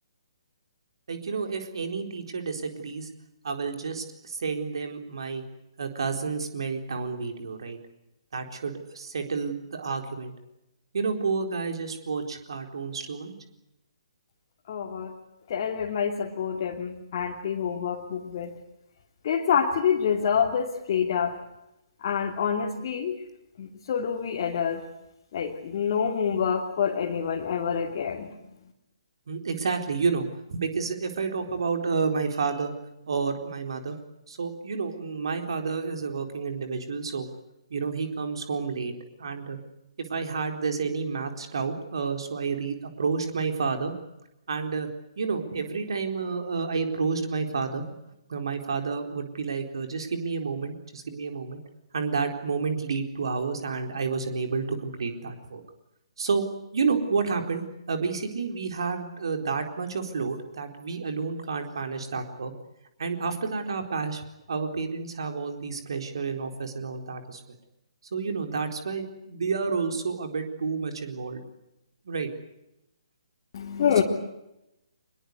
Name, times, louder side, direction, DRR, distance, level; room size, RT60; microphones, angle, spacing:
voice 1, 1.1-3.1 3.4-5.4 5.8-7.8 8.3-10.3 10.9-13.3 29.3-32.7 33.1-34.0 34.3-37.3 37.7-38.9 39.2-39.6 40.0-43.9 44.5-44.9 45.2-47.9 48.3-51.6 51.9-55.6 56.2-56.4 56.7-62.5 63.0-67.4 68.1-71.4 72.0-72.3, right 5 dB, 55° right, 5 dB, 4.2 m, -30 dB
voice 2, 14.7-15.1 15.5-18.6 19.2-21.4 22.0-23.2 23.6-24.9 25.3-28.4 73.5-74.0, left 7 dB, 40° left, 0 dB, 2.8 m, -27 dB
25.0 x 21.5 x 8.2 m, 0.88 s
figure-of-eight pair, 135°, 3 cm